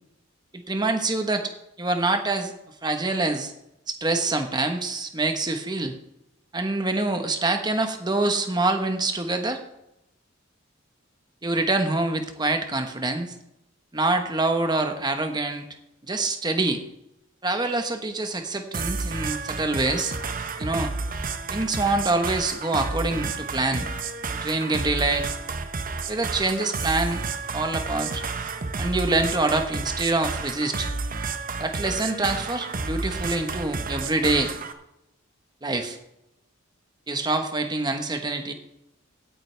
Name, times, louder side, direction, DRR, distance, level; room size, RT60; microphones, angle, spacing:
voice 1, 0.5-1.5 1.8-2.5 2.8-3.5 3.9-5.9 6.5-9.6 11.4-13.3 13.9-15.6 16.0-16.8 17.4-20.1 20.6-20.9 21.5-23.9 24.4-25.3 26.1-27.2 27.5-28.2 28.8-30.9 31.6-34.5 35.6-36.0 37.1-38.5, right 2 dB, 20° right, 6 dB, 1.2 m, -25 dB
sound 1, 18.7-34.7, right 4 dB, 45° right, 0.9 m, -31 dB
16.5 x 9.0 x 3.4 m, 0.86 s
head